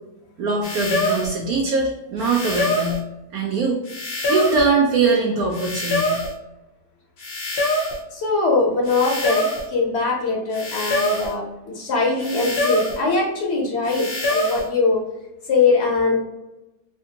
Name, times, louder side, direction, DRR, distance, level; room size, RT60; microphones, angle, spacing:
voice 1, 0.4-3.0 3.3-3.8 4.3-6.2, right 3 dB, 75° right, -1 dB, 1.0 m, -21 dB
sound 1, 0.6-1.4 2.2-3.0 3.9-4.7 5.5-6.4 7.2-8.0 8.9-9.7 10.5-11.4 12.2-13.0 13.9-14.7, left 1 dB, 75° left, 0.4 m, -24 dB
voice 2, 8.1-11.4 11.7-15.0 15.5-16.2, left 3 dB, 50° left, -2 dB, 1.0 m, -21 dB
3.3 x 2.7 x 2.7 m, 0.96 s
omnidirectional pair, 1.7 m